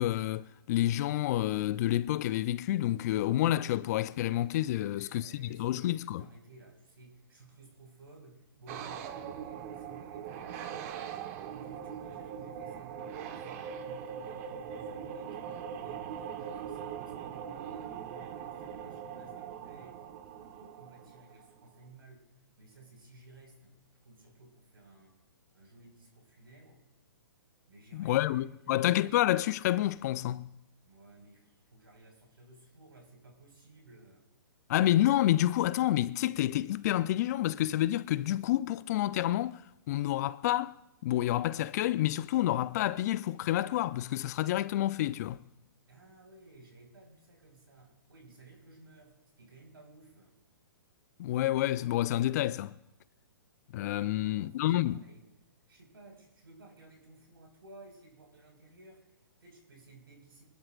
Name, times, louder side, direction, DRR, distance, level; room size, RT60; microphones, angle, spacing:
voice 1, 0.0-6.3 27.9-30.5 34.7-39.6 39.9-40.8 41.0-45.4 51.2-52.7 53.7-55.0, left 14 dB, 45° left, 0.6 m, -29 dB
voice 2, 4.7-11.0 11.3-20.0 20.4-22.3 22.6-23.8 24.0-25.2 25.5-26.8 27.7-28.9 30.8-34.3 45.9-50.4 54.0-55.3 55.7-60.5, right 2 dB, 80° right, 5.3 m, -56 dB
sound 1, 8.7-21.6, right 8 dB, 40° right, 1.4 m, -41 dB
25.0 x 12.0 x 2.5 m
hypercardioid pair, 125°, 12 cm